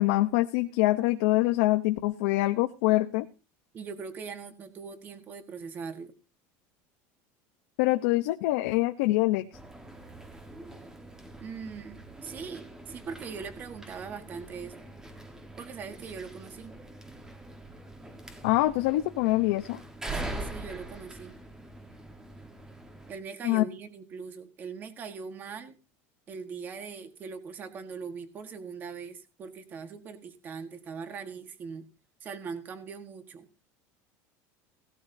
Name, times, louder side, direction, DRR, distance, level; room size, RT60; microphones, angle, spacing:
voice 1, 0.0-3.3 7.8-9.5 18.4-19.8 23.4-23.6, left 18 dB, 75° left, 7 dB, 0.8 m, -25 dB
voice 2, 3.7-6.1 11.4-14.7 15.6-16.7 20.1-21.4 23.1-25.8 26.3-31.8 32.2-33.5, right 5 dB, 25° right, 9 dB, 1.5 m, -41 dB
sound 1, 9.5-23.2, right 2 dB, 10° right, 1.3 m, -43 dB
17.5 x 13.0 x 2.8 m, 0.31 s
cardioid pair, 175°, 7 cm